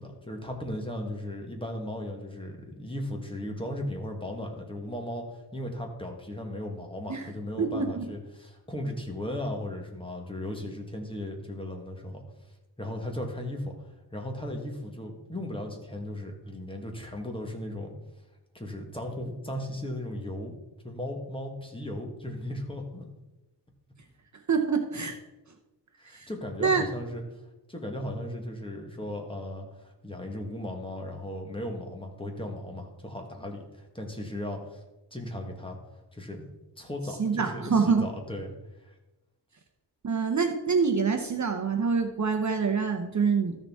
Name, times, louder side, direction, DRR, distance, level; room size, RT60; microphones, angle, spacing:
voice 1, 0.0-12.2 12.8-13.7 14.1-17.9 18.5-20.6 20.8-23.0 26.0-27.2 27.7-34.8 35.1-35.8 36.1-36.4 36.8-38.5 38.8-38.9, left 1 dB, 10° left, 2 dB, 1.3 m, -36 dB
voice 2, 7.6-8.0 24.5-25.2 26.1-26.3 26.6-26.8 37.2-38.1 40.0-43.6, right 5 dB, 40° right, 4 dB, 0.7 m, -26 dB
13.5 x 6.6 x 3.5 m, 1.0 s
wide cardioid pair, 160°, 43 cm